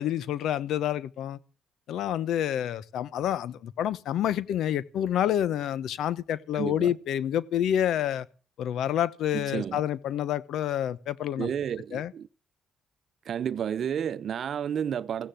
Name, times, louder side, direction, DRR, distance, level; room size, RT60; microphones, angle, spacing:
voice 1, 0.0-1.4 1.9-8.3 8.6-11.5 11.9-12.1, left 10 dB, 80° left, 0.9 m, -28 dB
voice 2, 6.5-6.9 9.3-9.8 11.4-12.3 13.3-15.3, right 8 dB, 60° right, 0.8 m, -31 dB
16.0 x 10.0 x 7.8 m
cardioid pair, 90°, 0 cm